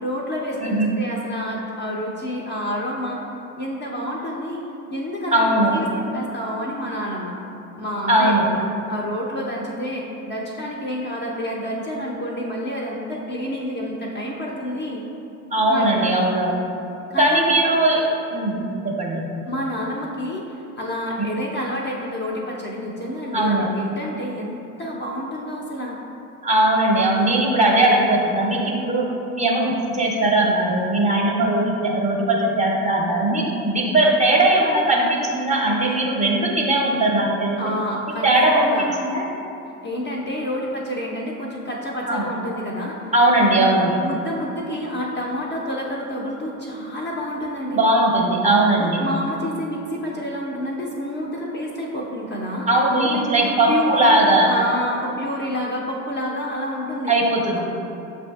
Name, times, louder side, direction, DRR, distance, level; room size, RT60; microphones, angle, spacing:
voice 1, 0.0-3.2 3.6-4.6 4.9-7.4 7.8-8.6 8.9-15.0 15.7-16.1 17.1-17.5 19.5-26.0 35.8-36.0 37.6-38.9 39.8-43.0 43.3-43.6 44.0-47.8 48.8-52.7 53.0-54.1 54.5-57.1 57.6-57.7, equal, 25° left, -3 dB, 0.4 m, -29 dB
voice 2, 0.6-0.9 5.3-5.8 8.1-8.5 15.5-16.6 17.2-18.0 18.3-19.2 23.3-23.7 26.4-29.0 29.3-37.6 38.2-39.2 42.1-42.3 43.1-44.0 47.7-49.0 52.7-54.5 57.1-57.6, right 1 dB, 15° right, -2 dB, 0.6 m, -19 dB
6.7 x 2.5 x 2.3 m, 2.8 s
hypercardioid pair, 75°, 43 cm